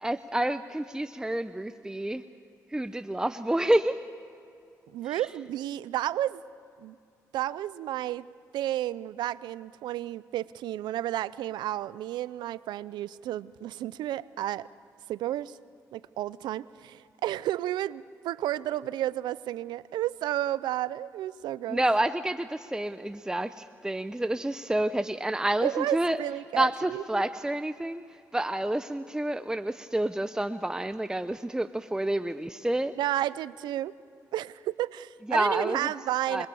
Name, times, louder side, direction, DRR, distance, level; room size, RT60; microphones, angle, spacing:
voice 1, 0.0-2.2 2.7-4.0 5.0-5.2 21.7-26.2 26.5-28.0 28.3-32.9 35.3-35.9 36.3-36.5, right 1 dB, 10° right, 10 dB, 0.7 m, -29 dB
voice 2, 4.9-6.4 6.8-7.0 7.3-8.2 8.5-14.7 15.1-15.6 15.9-21.8 25.6-27.0 33.0-33.9 34.3-36.5, right 13 dB, 85° right, 18 dB, 0.5 m, -32 dB
27.0 x 22.0 x 7.0 m, 2.6 s
supercardioid pair, 60°, 7 cm